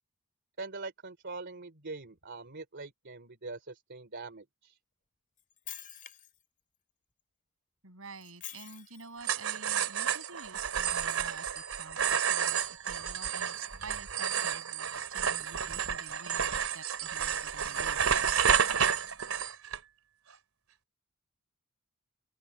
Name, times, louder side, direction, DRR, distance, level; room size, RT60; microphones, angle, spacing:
voice 1, 0.6-4.8, right 3 dB, 55° right, 3.3 m, -43 dB
Shatter, 5.4-6.4 8.2-9.2, left 11 dB, 40° left, 3.8 m, -46 dB
voice 2, 7.8-18.3, right 4 dB, 75° right, 7.6 m, -49 dB
sound 1, 9.2-19.8, right 8 dB, 90° right, 2.9 m, -30 dB
open air
head